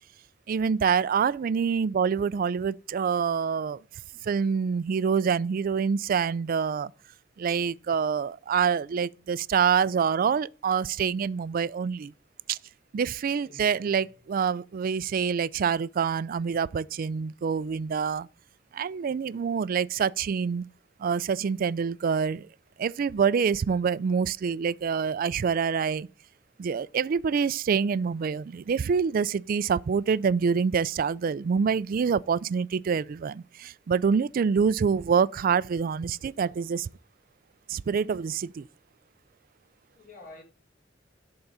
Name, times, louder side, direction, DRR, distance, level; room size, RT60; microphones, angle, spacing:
voice 1, 0.5-3.8 4.2-6.9 7.4-12.1 12.5-12.6 12.9-18.3 18.7-20.6 21.0-22.5 22.8-26.1 26.6-36.9 37.7-38.6, right 6 dB, 45° right, 0.3 m, -26 dB
voice 2, 13.4-14.0 39.9-40.4, left 2 dB, 50° left, 3.7 m, -49 dB
11.5 x 3.9 x 5.5 m
head